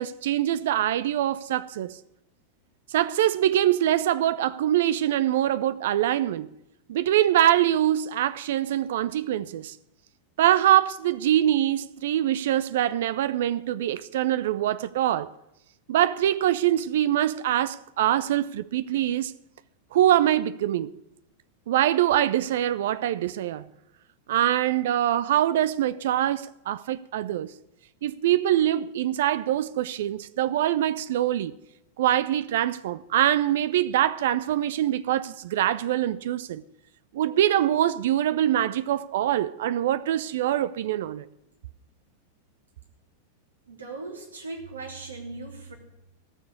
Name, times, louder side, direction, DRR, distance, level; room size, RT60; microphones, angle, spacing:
voice 1, 0.0-2.0 2.9-6.5 6.9-9.8 10.4-15.3 15.9-19.3 19.9-20.9 21.7-23.7 24.3-27.5 28.0-31.5 32.0-36.6 37.1-41.3, right 12 dB, 55° right, 0.4 m, -24 dB
voice 2, 43.7-45.8, right 3 dB, 75° right, 3.0 m, -38 dB
17.5 x 6.7 x 8.3 m
figure-of-eight pair, 90°, 0 cm